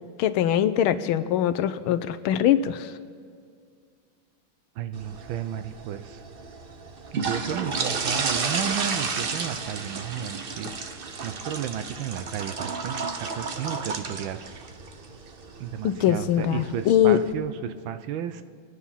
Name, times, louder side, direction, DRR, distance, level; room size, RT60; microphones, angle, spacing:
voice 1, 0.2-2.9 15.8-17.2, left 11 dB, 80° left, 13 dB, 1.5 m, -22 dB
voice 2, 4.8-6.2 7.1-14.4 15.6-18.4, right 9 dB, 75° right, 11 dB, 1.4 m, -33 dB
sound 1, 4.9-17.3, right 4 dB, 60° right, 0.6 m, -32 dB
26.0 x 9.8 x 5.7 m, 2.1 s
omnidirectional pair, 2.3 m